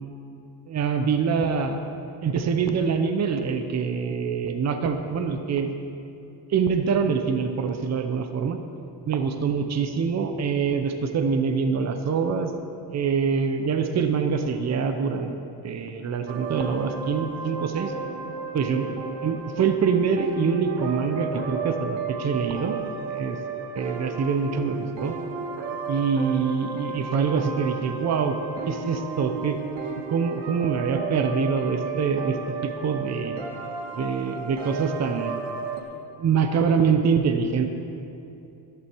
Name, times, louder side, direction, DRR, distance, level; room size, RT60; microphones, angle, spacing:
voice 1, 0.7-1.8 2.2-5.7 6.5-8.6 9.1-12.5 12.9-17.9 18.5-22.8 23.1-23.4 23.7-25.1 25.9-28.4 28.7-29.6 30.1-33.4 34.0-35.3 36.2-37.7, right 6 dB, 40° right, 7 dB, 0.8 m, -25 dB
sound 1, 16.3-35.8, right 4 dB, 85° right, 1.6 m, -33 dB
14.0 x 12.0 x 4.6 m, 2.8 s
cardioid pair, 155°, 42 cm